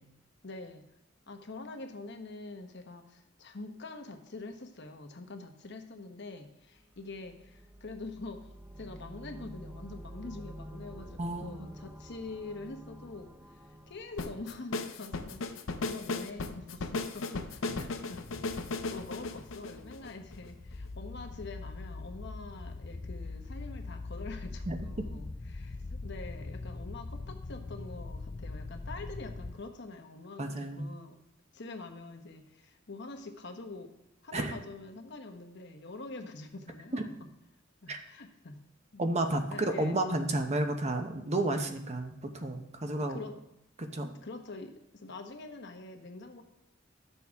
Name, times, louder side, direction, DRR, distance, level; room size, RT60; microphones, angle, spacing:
voice 1, 0.4-0.8 1.3-8.5 8.7-15.4 15.8-18.4 18.9-31.2 31.5-33.9 34.2-37.3 37.8-38.6 38.9-39.0 39.5-40.0 43.1-43.4 44.2-46.4, left 3 dB, 60° left, 5 dB, 1.0 m, -45 dB
sound 1, 6.7-15.6, right 1 dB, 10° right, 0.7 m, -49 dB
voice 2, 11.2-11.6 24.7-24.8 30.4-30.9 34.3-34.5 36.9-37.0 37.9-38.0 39.0-43.2 43.8-44.1, right 2 dB, 35° right, 5 dB, 0.9 m, -31 dB
sound 2, 14.2-20.5, left 3 dB, 90° left, 0.7 m, -36 dB
sound 3, 18.1-29.5, left 3 dB, 25° left, 0.3 m, -42 dB
12.5 x 6.9 x 3.6 m, 0.85 s
head